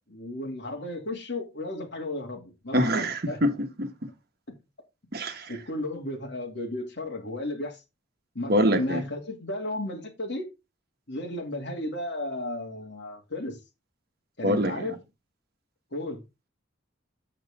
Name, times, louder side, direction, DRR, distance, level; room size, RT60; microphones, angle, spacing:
voice 1, 0.0-3.4 5.5-7.8 8.3-10.5 11.1-13.6 14.4-15.0 15.9-16.2, left 1 dB, 60° left, 2.5 m, -34 dB
voice 2, 2.7-3.9 5.1-5.5 8.5-9.0 14.4-14.8, equal, 50° right, 1.4 m, -24 dB
8.6 x 6.7 x 3.7 m
head